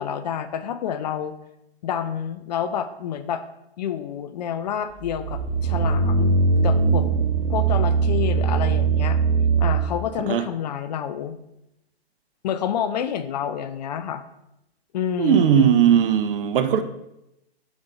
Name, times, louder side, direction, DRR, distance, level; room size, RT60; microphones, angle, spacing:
voice 1, 0.0-1.3 1.8-3.4 3.8-7.1 7.5-9.2 9.6-11.4 12.4-14.2 14.9-15.7, left 8 dB, 40° left, 10 dB, 0.4 m, -28 dB
sound 1, 5.0-10.1, right 4 dB, 20° right, 0.4 m, -21 dB
voice 2, 15.2-16.8, right 9 dB, 55° right, 9 dB, 0.7 m, -18 dB
5.1 x 4.0 x 5.3 m, 0.86 s
hypercardioid pair, 130°, 32 cm